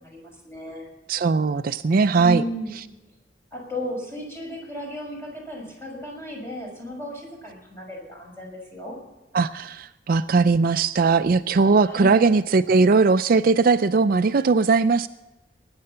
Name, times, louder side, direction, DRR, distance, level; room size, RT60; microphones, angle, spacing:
voice 1, 0.0-0.9 2.1-2.7 3.5-9.0 11.8-12.2, equal, 15° left, -1 dB, 6.2 m, -34 dB
voice 2, 1.1-2.4 9.3-15.1, right 4 dB, 50° right, 12 dB, 0.4 m, -19 dB
20.5 x 9.7 x 5.6 m, 1.0 s
head